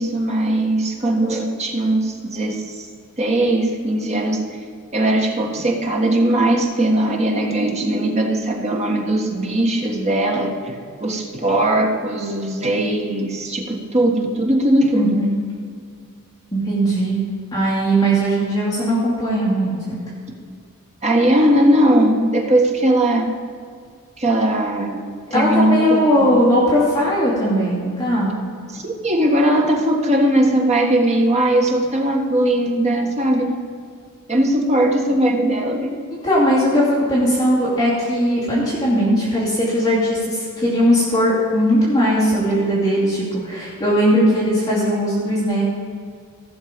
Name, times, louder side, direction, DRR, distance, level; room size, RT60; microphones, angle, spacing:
voice 1, 0.0-2.9 3.2-4.4 4.9-15.2 21.0-23.3 24.2-25.0 25.3-26.4 28.7-33.5 34.3-35.9, right 1 dB, 30° right, 1 dB, 1.4 m, -19 dB
voice 2, 14.9-15.3 16.5-17.2 17.5-20.0 25.3-28.3 36.2-45.7, equal, 15° left, -9 dB, 2.7 m, -18 dB
15.0 x 6.6 x 5.2 m, 2.1 s
head